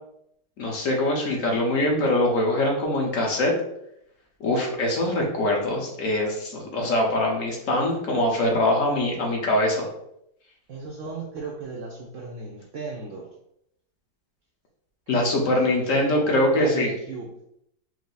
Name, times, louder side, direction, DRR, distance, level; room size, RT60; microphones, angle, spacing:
voice 1, 0.6-3.5 4.4-9.9 15.1-16.9, left 1 dB, 55° left, -1 dB, 1.0 m, -23 dB
voice 2, 10.7-13.3 15.1-17.3, right 3 dB, 85° right, -1 dB, 0.6 m, -36 dB
4.6 x 2.0 x 3.9 m, 0.76 s
omnidirectional pair, 2.0 m